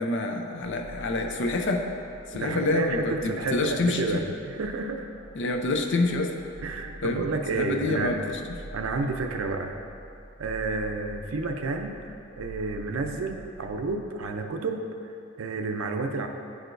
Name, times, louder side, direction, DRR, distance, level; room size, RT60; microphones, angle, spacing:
voice 1, 0.0-1.9 2.3-4.2 5.4-6.3 7.0-7.2 7.5-8.4, left 2 dB, 60° left, 3 dB, 0.5 m, -27 dB
sound 1, 0.6-14.3, equal, 15° left, 0.9 m, -46 dB
voice 2, 2.3-5.1 6.6-8.2 8.7-9.8 10.4-16.3, right 3 dB, 80° right, 5 dB, 0.5 m, -31 dB
9.7 x 4.7 x 2.6 m, 2.6 s
head